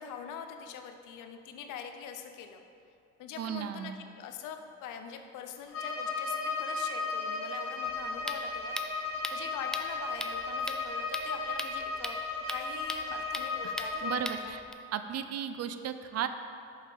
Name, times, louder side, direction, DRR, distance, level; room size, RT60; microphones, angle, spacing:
voice 1, 0.0-2.6 3.2-12.2 12.5-14.1 14.4-14.5, left 7 dB, 80° left, 6 dB, 0.7 m, -44 dB
voice 2, 3.4-4.0 13.6-14.6 14.9-16.3, right 9 dB, 55° right, 10 dB, 0.5 m, -35 dB
Bowed string instrument, 5.7-14.3, left 4 dB, 50° left, 1.4 m, -35 dB
sound 1, 7.8-14.7, left 1 dB, ahead, 0.3 m, -41 dB
5.7 x 5.5 x 5.0 m, 2.5 s
cardioid pair, 100°, 31 cm